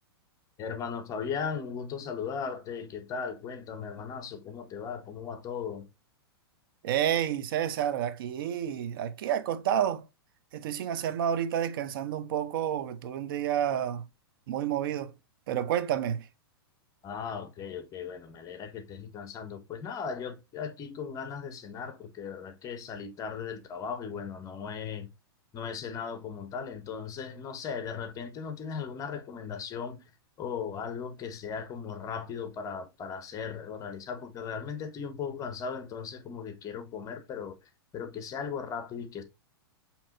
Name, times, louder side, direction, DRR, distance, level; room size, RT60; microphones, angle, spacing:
voice 1, 0.6-5.9 17.0-25.1 25.5-30.0 30.4-39.2, left 6 dB, 25° left, 0.8 m, -37 dB
voice 2, 6.8-10.0 10.5-14.0 14.5-15.1 15.5-16.2, right 10 dB, 60° right, 0.6 m, -29 dB
5.2 x 2.9 x 2.5 m
hypercardioid pair, 115°, 13 cm